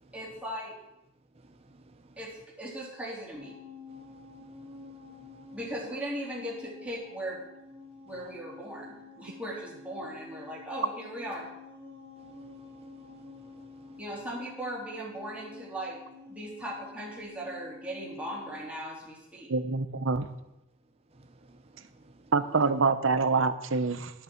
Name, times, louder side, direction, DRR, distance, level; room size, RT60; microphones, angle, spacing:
voice 1, 0.1-0.8 2.2-3.6 5.5-7.4 8.1-11.5 14.0-16.0 16.3-19.5, equal, 5° right, 3.3 m, -38 dB
voice 2, 1.4-2.0 4.1-5.5 12.2-14.0 21.2-22.3, right 2 dB, 30° right, 0.7 m, -58 dB
sound 1, 3.3-18.7, left 3 dB, 50° left, 4.8 m, -49 dB
voice 3, 19.5-20.3 22.3-24.1, right 4 dB, 70° right, 0.8 m, -26 dB
11.0 x 8.5 x 4.5 m
head